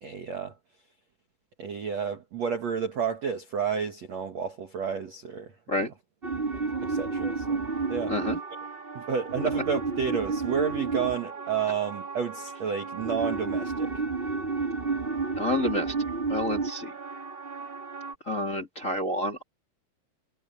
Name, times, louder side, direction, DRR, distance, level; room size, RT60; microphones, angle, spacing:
voice 1, 0.0-0.6 1.6-5.9 6.8-7.6 7.9-8.2 8.9-14.0, right 7 dB, 60° right, 1.8 m, -31 dB
sound 1, 6.2-18.1, right 4 dB, 85° right, 0.5 m, -31 dB
voice 2, 8.1-8.4 15.3-15.9 16.3-16.9 18.3-19.4, left 1 dB, 20° left, 2.1 m, -29 dB
omnidirectional pair, 5.8 m